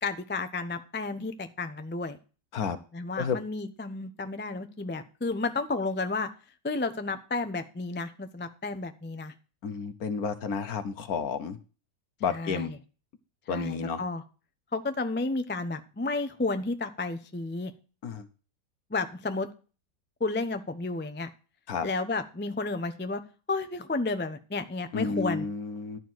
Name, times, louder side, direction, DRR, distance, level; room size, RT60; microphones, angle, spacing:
voice 1, 0.0-2.2 2.9-6.3 6.6-9.3 12.3-12.7 13.5-14.2 14.7-17.7 18.9-19.5 20.2-21.3 21.8-23.2 23.5-25.4, left 3 dB, 10° left, 9 dB, 0.5 m, -32 dB
voice 2, 9.6-11.6 12.2-12.7 13.5-14.0 18.0-18.3 21.7-21.9 24.9-26.0, left 5 dB, 60° left, 11 dB, 1.3 m, -31 dB
12.0 x 4.6 x 7.6 m, 0.34 s
omnidirectional pair, 1.8 m